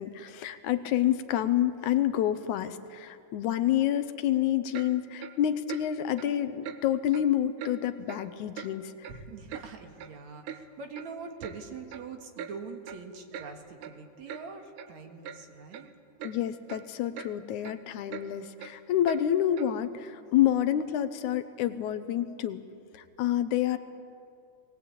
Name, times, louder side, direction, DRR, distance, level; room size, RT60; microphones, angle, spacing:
voice 1, 0.0-9.1 16.2-22.6 22.9-23.8, left 11 dB, 80° left, 11 dB, 2.2 m, -28 dB
Clock, 4.7-4.9 5.2-5.4 5.7-5.8 6.2-6.3 6.6-6.8 7.1-7.3 7.6-7.7 8.1-8.2 8.6-8.7 9.0-9.7 10.0-10.1 10.4-10.6 10.9-11.1 11.4-11.6 11.9-12.0 12.4-12.5 12.9-13.0 13.3-13.5 13.8-13.9 14.3-14.4 14.8-14.9 15.2-15.4 15.7-15.9 16.2-16.3 16.7-16.8 17.1-17.3 17.6-17.7 18.1-18.2 18.6-18.7 19.1-19.2 19.6-19.7, right 8 dB, 85° right, 2.6 m, -41 dB
voice 2, 9.0-15.9, right 4 dB, 65° right, 4 dB, 2.9 m, -43 dB
21.5 x 19.0 x 8.6 m, 2.4 s
omnidirectional pair, 3.6 m